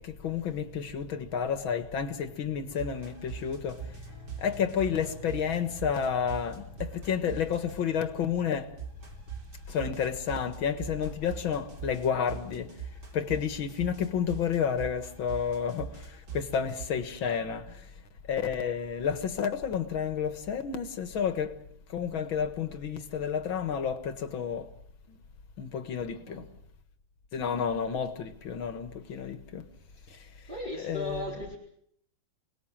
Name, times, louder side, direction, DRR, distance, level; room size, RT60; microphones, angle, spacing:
voice 1, 0.0-3.9 4.4-8.7 9.7-12.7 13.1-17.9 18.3-21.6 21.9-24.7 25.1-25.2 25.6-26.5 27.3-29.7 30.1-30.2 30.8-31.4, left 7 dB, 90° left, 2.4 m, -31 dB
sound 1, 2.8-8.0 8.8-16.9, right 7 dB, 60° right, 4.2 m, -42 dB
voice 2, 26.1-26.4 30.5-31.6, equal, 25° right, 3.8 m, -38 dB
29.0 x 19.5 x 7.4 m
omnidirectional pair, 2.1 m